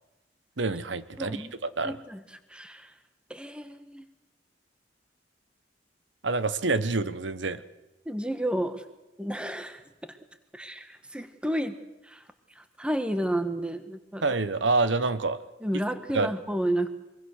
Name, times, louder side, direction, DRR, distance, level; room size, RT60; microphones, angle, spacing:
voice 1, 0.6-2.0 6.2-7.6 14.2-15.4 16.1-16.3, right 3 dB, 90° right, 13 dB, 1.2 m, -27 dB
voice 2, 1.2-1.5 1.8-2.2 2.5-2.9 3.3-4.0 8.0-8.8 9.2-10.2 10.5-11.8 12.0-12.2 12.6-14.2 15.6-16.9, right 1 dB, 5° right, 9 dB, 1.3 m, -31 dB
24.0 x 23.0 x 6.6 m, 0.96 s
head